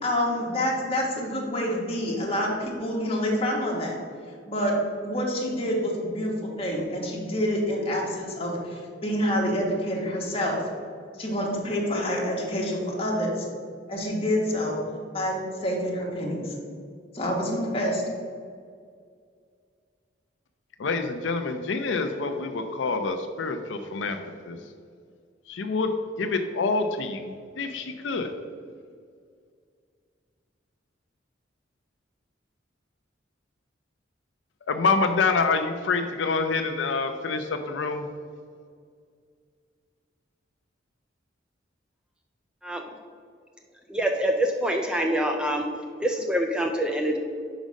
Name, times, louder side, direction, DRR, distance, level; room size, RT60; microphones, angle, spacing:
voice 1, 0.0-4.0 4.5-4.7 5.0-10.6 11.2-13.4 13.9-14.8 15.1-16.5 17.1-18.0, equal, 30° left, -2 dB, 1.5 m, -27 dB
voice 2, 20.8-24.2 24.5-24.6 25.5-25.9 26.2-28.3 34.7-38.1, left 4 dB, 80° left, 7 dB, 0.5 m, -26 dB
voice 3, 43.9-45.7 46.0-47.2, right 1 dB, 5° right, 2 dB, 0.4 m, -25 dB
5.2 x 5.1 x 6.2 m, 2.2 s
head